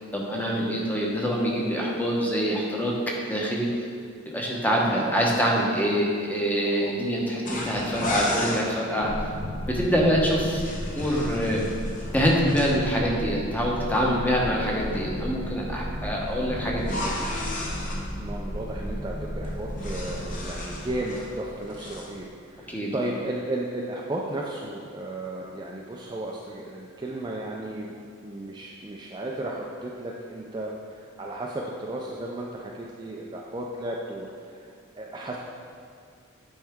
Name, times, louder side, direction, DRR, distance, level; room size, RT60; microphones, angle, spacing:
voice 1, 0.1-2.9 3.3-3.7 4.3-9.1 9.7-10.6 10.9-11.6 12.1-17.0 22.7-23.1, equal, 10° left, -3 dB, 0.9 m, -25 dB
voice 2, 4.8-5.2 6.6-6.9 14.4-14.6 18.2-27.9 28.2-35.4, right 1 dB, 20° right, -2 dB, 0.4 m, -34 dB
sound 1, 7.5-8.7 10.3-12.7 16.8-18.0 19.4-21.3 21.6-22.1, left 1 dB, 40° left, 1.0 m, -33 dB
sound 2, 9.0-22.3, equal, 65° left, 1.1 m, -34 dB
8.9 x 4.6 x 3.6 m, 2.3 s
head